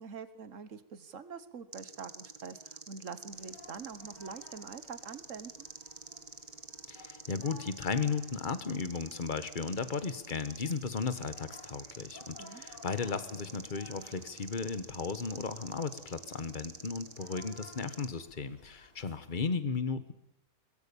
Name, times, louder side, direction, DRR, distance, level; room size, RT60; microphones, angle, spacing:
voice 1, 0.0-5.7 12.4-12.6, right 6 dB, 50° right, 12 dB, 1.4 m, -45 dB
sound 1, 1.7-18.1, right 4 dB, 30° right, 1.2 m, -48 dB
sound 2, 3.3-19.6, left 2 dB, 70° left, 4.5 m, -58 dB
voice 2, 6.9-20.1, left 5 dB, 30° left, 12 dB, 1.3 m, -35 dB
23.0 x 19.5 x 7.1 m, 0.89 s
omnidirectional pair, 1.9 m